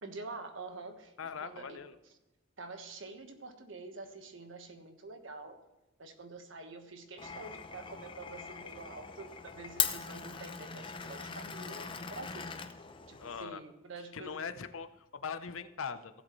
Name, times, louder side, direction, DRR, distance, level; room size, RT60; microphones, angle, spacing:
voice 1, 0.0-1.8 2.6-5.6 6.0-12.6 13.1-14.4, right 3 dB, 70° right, 6 dB, 1.3 m, -47 dB
voice 2, 1.2-2.0 13.2-13.6 14.1-16.2, left 6 dB, 80° left, 11 dB, 0.7 m, -41 dB
Glass, 7.2-13.4, left 7 dB, 25° left, 0.6 m, -40 dB
16.5 x 7.7 x 3.1 m, 1.0 s
head